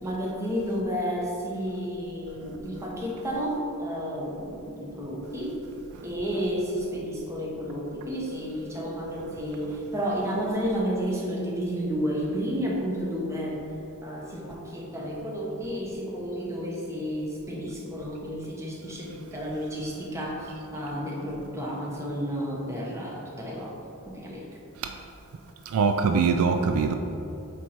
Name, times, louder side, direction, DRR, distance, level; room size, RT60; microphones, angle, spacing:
voice 1, 0.0-5.6 6.0-13.7 14.0-23.7 24.1-24.5, equal, 15° right, -4 dB, 1.0 m, -31 dB
voice 2, 25.7-27.0, right 5 dB, 65° right, 6 dB, 0.3 m, -23 dB
7.8 x 3.0 x 4.3 m, 2.7 s
head